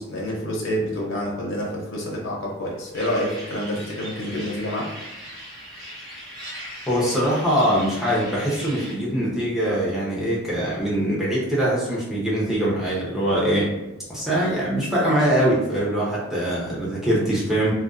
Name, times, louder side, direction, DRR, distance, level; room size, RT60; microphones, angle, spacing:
voice 1, 0.0-4.9, equal, 70° left, -4 dB, 0.6 m, -28 dB
sound 1, 2.9-8.9, equal, 55° right, 1.0 m, -39 dB
voice 2, 6.9-13.7 14.1-17.7, right 1 dB, ahead, -8 dB, 0.7 m, -22 dB
2.4 x 2.2 x 2.4 m, 1.0 s
head